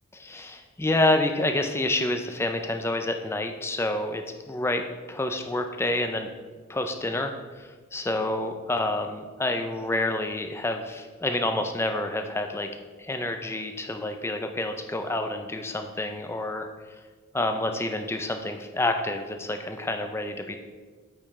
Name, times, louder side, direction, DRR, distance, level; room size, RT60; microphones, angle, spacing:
voice 1, 0.1-4.8 5.1-6.3 6.7-12.7 13.0-16.7 17.3-20.6, left 2 dB, 10° left, 5 dB, 0.4 m, -28 dB
8.4 x 5.5 x 3.2 m, 1.4 s
head